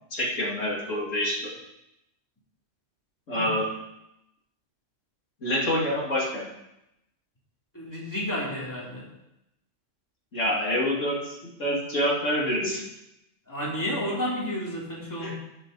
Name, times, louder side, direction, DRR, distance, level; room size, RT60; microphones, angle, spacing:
voice 1, 0.1-1.5 3.3-3.7 5.4-6.5 10.3-12.8 15.2-15.3, equal, 85° left, -4 dB, 2.6 m, -27 dB
voice 2, 7.7-9.1 13.5-15.3, equal, 15° left, -5 dB, 2.6 m, -31 dB
16.0 x 5.7 x 4.0 m, 0.88 s
omnidirectional pair, 1.3 m